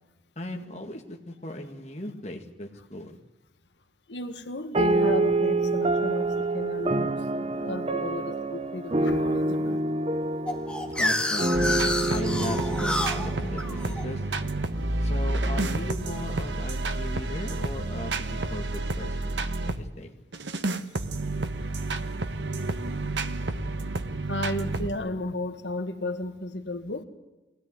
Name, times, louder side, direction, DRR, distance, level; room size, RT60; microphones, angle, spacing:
voice 1, 0.4-3.2 10.9-14.2 15.0-20.1, left 1 dB, 40° left, 3 dB, 2.1 m, -37 dB
voice 2, 4.1-6.3 6.5-7.1 7.5-9.8 24.3-27.0, left 2 dB, 80° left, 7 dB, 1.7 m, -33 dB
sound 1, 4.7-14.5, right 2 dB, 30° right, 0.7 m, -27 dB
sound 2, 10.5-15.3, left 1 dB, 5° left, 1.7 m, -30 dB
sound 3, 11.5-19.8 20.3-24.9, right 2 dB, 85° right, 1.3 m, -30 dB
23.0 x 17.0 x 9.7 m, 1.1 s
head